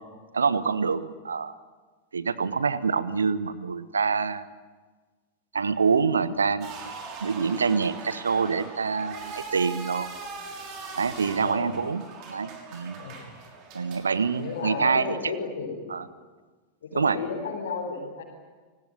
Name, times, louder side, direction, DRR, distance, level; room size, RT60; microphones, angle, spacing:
voice 1, 0.3-1.5 2.1-4.5 5.5-6.7 7.2-10.1 10.9-13.0 13.7-15.3 15.9-16.0 17.0-17.2, right 5 dB, 75° right, 15 dB, 1.3 m, -26 dB
sound 1, 6.6-15.1, right 4 dB, 40° right, 5.9 m, -41 dB
voice 2, 11.2-11.7 13.0-13.3 14.4-15.9 16.8-18.2, left 4 dB, 65° left, -2 dB, 4.7 m, -34 dB
29.5 x 19.5 x 9.2 m, 1.4 s
figure-of-eight pair, 90°, 0 cm